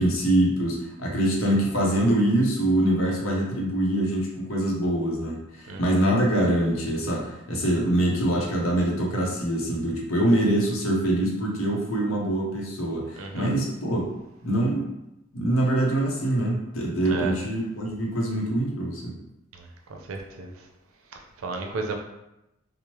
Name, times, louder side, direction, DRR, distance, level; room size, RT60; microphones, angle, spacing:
voice 1, 0.0-14.0 14.4-14.9 15.3-19.1, right 1 dB, 80° left, -1 dB, 0.7 m, -24 dB
voice 2, 13.2-13.5 17.1-17.3 20.1-20.5 21.4-21.9, right 4 dB, 85° right, 3 dB, 0.5 m, -32 dB
2.9 x 2.0 x 3.0 m, 0.90 s
head